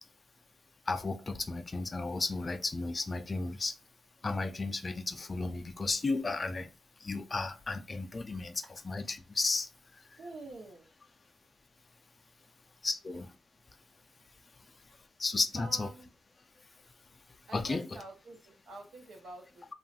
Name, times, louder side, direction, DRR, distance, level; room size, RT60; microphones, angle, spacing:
voice 1, 0.9-3.7 4.2-6.7 7.0-9.7 12.8-13.3 15.2-15.9 17.5-17.9, left 3 dB, 30° left, 0.3 m, -33 dB
voice 2, 10.2-10.9 15.6-16.1 17.5-19.7, right 2 dB, 70° right, 0.8 m, -47 dB
2.9 x 2.3 x 2.7 m
wide cardioid pair, 130°, 0 cm